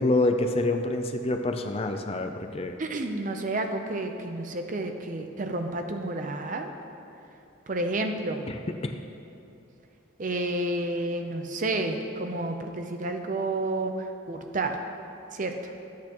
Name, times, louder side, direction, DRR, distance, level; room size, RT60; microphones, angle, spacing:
voice 1, 0.0-2.8 8.8-8.9, left 2 dB, 30° left, 5 dB, 0.4 m, -26 dB
voice 2, 2.8-6.7 7.7-8.4 10.2-14.8 15.3-15.7, right 2 dB, 40° right, 5 dB, 0.6 m, -30 dB
13.5 x 8.4 x 3.0 m, 2.8 s
head